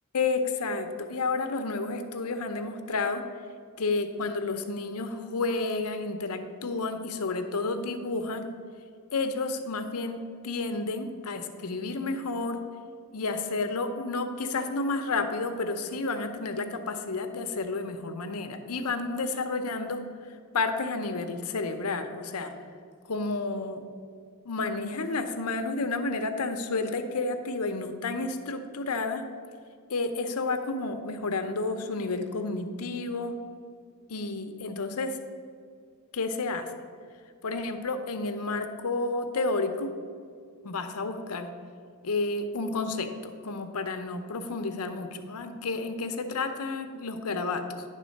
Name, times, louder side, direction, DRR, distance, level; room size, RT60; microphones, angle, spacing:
voice 1, 0.1-3.2 3.8-8.5 9.1-12.6 13.1-22.5 23.0-23.8 24.4-29.2 29.9-33.3 34.1-35.2 36.1-36.7 37.4-39.9 40.6-41.5 42.0-47.8, left 3 dB, 85° left, 7 dB, 0.7 m, -31 dB
10.0 x 3.7 x 6.4 m, 2.1 s
head